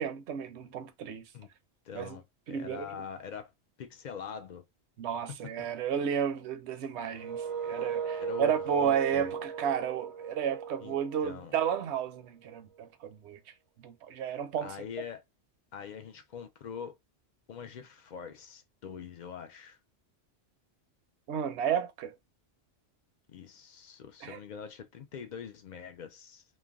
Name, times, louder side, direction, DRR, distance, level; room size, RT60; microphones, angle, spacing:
voice 1, 0.0-1.2 1.9-2.2 2.5-2.9 5.0-13.4 13.8-14.8 21.3-22.1 24.2-24.4, right 8 dB, 75° right, 0.8 m, -32 dB
voice 2, 1.9-3.5 3.8-4.6 5.3-5.4 8.2-9.4 10.8-11.0 11.2-11.5 14.6-15.2 15.7-16.9 17.5-19.8 23.3-26.4, left 7 dB, 60° left, 0.5 m, -43 dB
sound 1, 7.1-12.0, right 7 dB, 40° right, 0.5 m, -37 dB
3.2 x 2.2 x 2.3 m
omnidirectional pair, 1.2 m